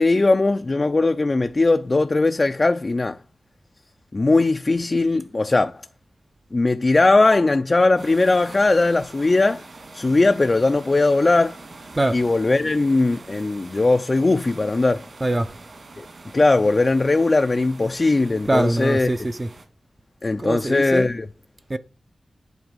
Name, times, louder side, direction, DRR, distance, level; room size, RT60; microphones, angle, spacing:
voice 1, 0.0-3.2 4.1-5.7 6.5-9.7 9.9-11.6 12.1-15.0 16.0-16.1 16.3-19.1 20.2-21.3, left 2 dB, 30° left, 0.6 m, -19 dB
sound 1, 8.0-19.6, right 3 dB, 50° right, 2.8 m, -44 dB
voice 2, 18.5-19.5 20.4-21.1 21.7-21.8, right 1 dB, 25° right, 0.8 m, -23 dB
11.0 x 4.6 x 7.8 m
wide cardioid pair, 120°, 0 cm